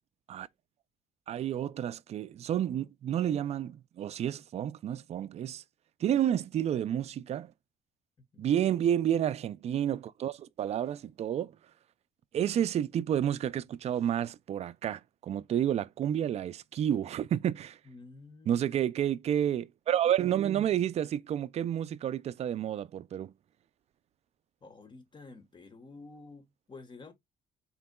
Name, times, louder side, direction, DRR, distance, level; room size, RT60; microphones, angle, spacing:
voice 1, 1.3-5.6 6.0-7.5 8.4-11.5 12.3-17.8 18.5-23.3, right 10 dB, 40° right, 0.3 m, -30 dB
voice 2, 17.8-18.7 24.6-27.1, left 3 dB, 30° left, 1.3 m, -50 dB
4.4 x 3.8 x 2.2 m
cardioid pair, 110°, 17 cm